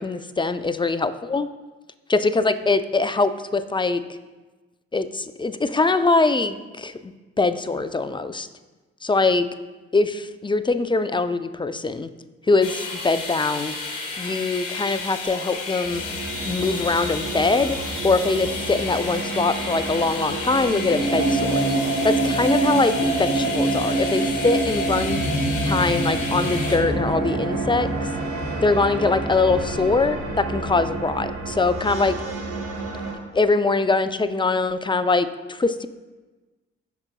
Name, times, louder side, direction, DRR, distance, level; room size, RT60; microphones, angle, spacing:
voice 1, 0.0-1.5 2.1-4.0 4.9-7.1 7.4-8.5 9.0-9.5 9.9-12.1 12.5-13.7 14.2-16.0 16.4-21.6 22.0-25.3 25.6-28.1 28.6-32.2 33.3-35.9, left 3 dB, 15° left, 12 dB, 0.6 m, -22 dB
sound 1, 12.6-26.8, left 4 dB, 75° left, 1.4 m, -32 dB
sound 2, 15.8-33.1, right 2 dB, 75° right, 2.6 m, -27 dB
16.0 x 6.0 x 2.3 m, 1.2 s
hypercardioid pair, 45°, 32 cm